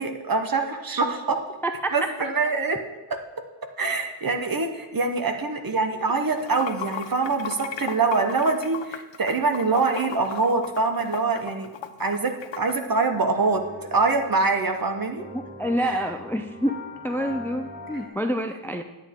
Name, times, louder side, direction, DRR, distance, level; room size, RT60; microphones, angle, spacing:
voice 1, 0.0-1.4 1.9-2.8 3.8-11.7 12.0-13.6 13.9-15.2 15.8-16.0, right 3 dB, 45° right, 5 dB, 1.0 m, -24 dB
Water / Sink (filling or washing), 6.3-12.7, left 9 dB, 65° left, 0.6 m, -35 dB
sound 1, 13.1-18.1, left 2 dB, 20° right, 1.2 m, -42 dB
voice 2, 15.3-16.8 17.0-18.8, equal, 5° left, 6 dB, 0.4 m, -27 dB
9.9 x 8.9 x 3.6 m, 1.2 s
wide cardioid pair, 110°, 47 cm